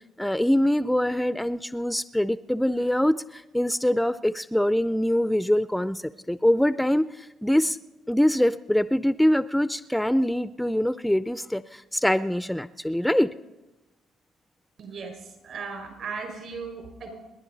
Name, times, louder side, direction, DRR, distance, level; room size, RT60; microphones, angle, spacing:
voice 1, 0.2-7.8 8.1-13.3, left 1 dB, 5° left, 14 dB, 0.5 m, -24 dB
voice 2, 14.8-17.1, right 5 dB, 65° right, 4 dB, 5.2 m, -37 dB
30.0 x 10.5 x 4.0 m, 1.0 s
hypercardioid pair, 55°, 0 cm